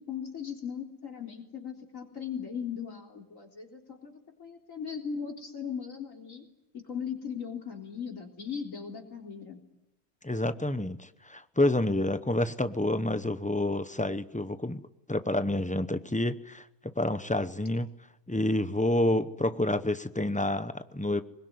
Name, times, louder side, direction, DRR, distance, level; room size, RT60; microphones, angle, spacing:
voice 1, 0.1-6.4 6.7-9.6, left 7 dB, 85° left, 2 dB, 4.2 m, -38 dB
voice 2, 10.2-14.8 15.1-17.9 18.3-21.2, left 1 dB, 5° left, 11 dB, 0.7 m, -28 dB
25.5 x 21.5 x 9.5 m, 0.88 s
omnidirectional pair, 1.3 m